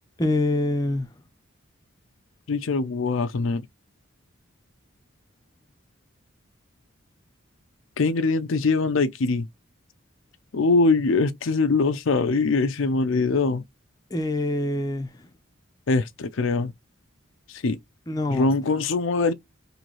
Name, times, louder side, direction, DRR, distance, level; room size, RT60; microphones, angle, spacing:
voice 1, 0.2-1.1 14.1-15.1 18.1-18.5, left 2 dB, 20° left, 0.6 m, -25 dB
voice 2, 2.5-3.7 8.0-9.5 10.5-13.6 15.9-16.7 17.5-17.8 18.3-19.3, left 3 dB, 75° left, 0.5 m, -22 dB
3.0 x 2.8 x 3.9 m
head